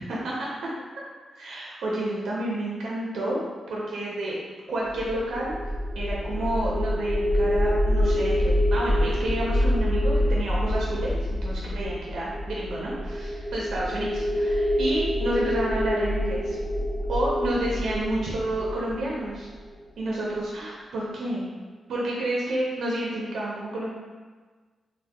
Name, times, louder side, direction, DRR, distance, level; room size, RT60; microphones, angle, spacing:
voice 1, 1.3-3.4 3.7-4.4 4.7-5.5 5.9-16.6 17.1-19.5 20.0-21.4 21.9-23.9, right 1 dB, 80° right, -4 dB, 0.5 m, -30 dB
sound 1, 4.9-20.0, equal, 45° left, 0.7 m, -26 dB
2.6 x 2.1 x 3.3 m, 1.4 s
wide cardioid pair, 150°, 0 cm